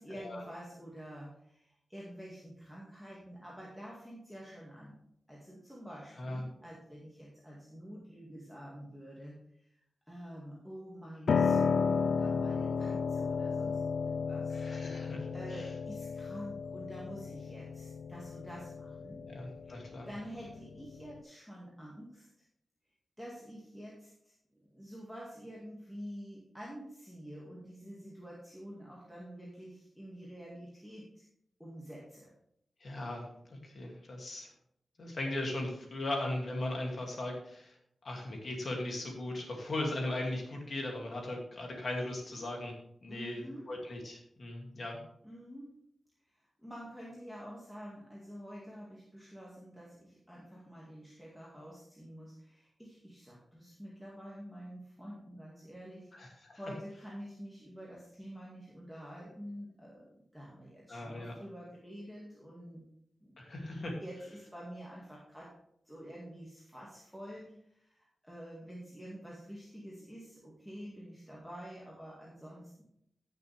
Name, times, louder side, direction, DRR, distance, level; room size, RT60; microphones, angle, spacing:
voice 1, 0.0-5.0 5.3-9.7 10.1-14.6 14.9-19.2 19.6-22.3 23.2-24.3 24.7-31.2 31.6-32.3 43.1-43.7 45.2-45.7 46.2-62.8 63.2-63.4 64.0-65.5 65.9-72.8, equal, ahead, -5 dB, 2.1 m, -48 dB
voice 2, 6.2-6.5 14.5-15.7 19.2-20.1 32.8-34.5 35.0-37.7 38.0-42.7 43.0-45.0 56.1-56.6 60.9-61.3 63.4-63.9, left 1 dB, 45° left, 1 dB, 2.5 m, -38 dB
Piano, 11.3-21.2, left 5 dB, 65° left, 0.4 m, -33 dB
16.0 x 6.7 x 3.4 m, 0.74 s
wide cardioid pair, 165°, 0 cm